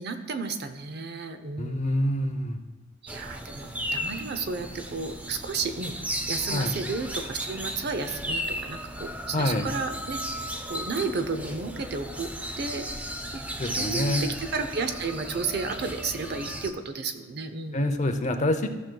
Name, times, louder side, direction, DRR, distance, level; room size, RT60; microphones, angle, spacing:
voice 1, 0.0-2.0 3.0-5.9 6.3-10.2 10.7-12.3 12.6-13.0 13.3-18.1, right 4 dB, 55° right, 8 dB, 0.6 m, -33 dB
voice 2, 1.6-2.6 6.5-6.8 9.3-9.7 13.6-14.3 17.7-18.7, left 1 dB, 35° left, 6 dB, 0.6 m, -26 dB
sound 1, 3.1-16.7, equal, 10° right, 0.4 m, -35 dB
14.5 x 6.1 x 2.3 m, 1.4 s
head